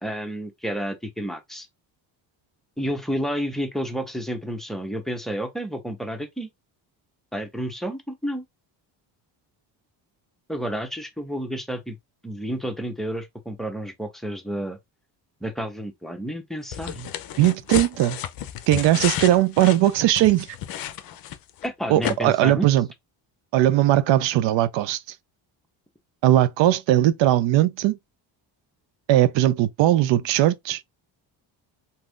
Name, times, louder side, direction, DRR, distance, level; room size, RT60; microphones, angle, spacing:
voice 1, 0.0-1.7 2.8-6.5 7.3-8.4 10.5-12.0 12.2-14.8 15.4-17.1 21.6-22.7, equal, ahead, 0.6 m, -30 dB
sound 1, 16.7-21.7 22.0-22.1, left 11 dB, 50° left, 0.5 m, -32 dB
voice 2, 17.4-18.2 18.7-20.5 21.9-22.9 23.5-25.0 26.2-28.0 29.1-30.8, right 13 dB, 75° right, 0.5 m, -19 dB
2.7 x 2.4 x 3.5 m
cardioid pair, 140°, 45 cm